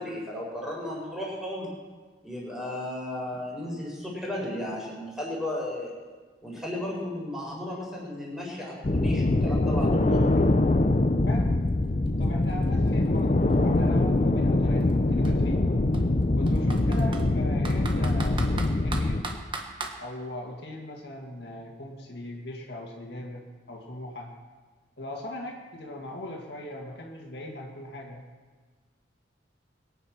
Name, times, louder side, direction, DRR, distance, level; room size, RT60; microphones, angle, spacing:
voice 1, 0.0-1.7 2.2-5.9 6.4-10.2, left 1 dB, ahead, -4 dB, 4.7 m, -34 dB
sound 1, 8.8-19.2, left 2 dB, 35° left, 0.6 m, -23 dB
Computer keyboard, 11.7-11.8 12.1-14.0 14.8-14.9 15.2-15.3 15.9-17.3 17.6-20.0, right 3 dB, 25° right, 1.4 m, -38 dB
voice 2, 12.2-15.7 16.4-18.4 18.8-19.4 20.0-24.3 25.0-28.2, left 1 dB, 60° left, 0 dB, 1.9 m, -39 dB
22.0 x 9.0 x 5.9 m, 1.5 s
head